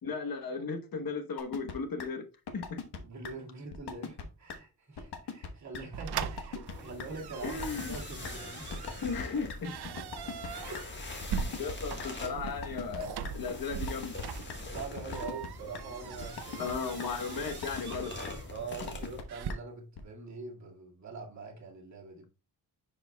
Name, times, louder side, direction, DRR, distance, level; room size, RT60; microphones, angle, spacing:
voice 1, 0.0-2.3 2.5-2.8 7.4-8.0 9.0-9.9 11.6-14.1 16.6-18.1, left 4 dB, 65° left, 1.1 m, -36 dB
sound 1, 1.4-1.7 2.0-2.1 2.5-3.0 3.2-3.3 3.7-4.2 4.5-4.6 5.0-5.5 5.7-5.8 6.2-6.7 7.0-7.1 7.5-8.3 8.7-9.6 10.0-10.8 11.2-12.1 12.5-13.0 13.2-13.3 13.7-14.2 14.5-14.6 15.0-15.5 15.7-15.8 16.2-16.7 17.0-17.1 17.5-18.0 18.2-18.3 18.7-19.2 19.5-19.6 20.0-20.1, left 6 dB, 90° left, 1.2 m, -40 dB
voice 2, 3.0-8.8 10.6-10.8 11.5-11.6 14.7-16.7 17.3-17.4 18.5-22.2, right 4 dB, 45° right, 2.2 m, -44 dB
sound 2, 5.9-19.5, right 7 dB, 80° right, 0.6 m, -41 dB
sound 3, 6.7-19.2, left 2 dB, 30° left, 1.5 m, -43 dB
10.0 x 5.0 x 2.3 m
wide cardioid pair, 155°, 38 cm